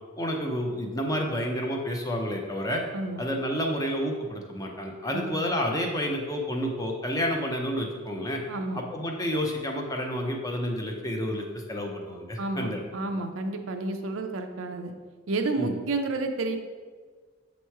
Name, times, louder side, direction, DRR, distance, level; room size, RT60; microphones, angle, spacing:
voice 1, 0.2-2.8 3.2-8.4 8.7-12.8 15.6-15.7, equal, 15° left, 1 dB, 0.6 m, -30 dB
voice 2, 8.5-8.8 12.4-14.9 15.3-16.6, right 2 dB, 70° right, 5 dB, 0.5 m, -30 dB
7.1 x 3.0 x 4.6 m, 1.5 s
head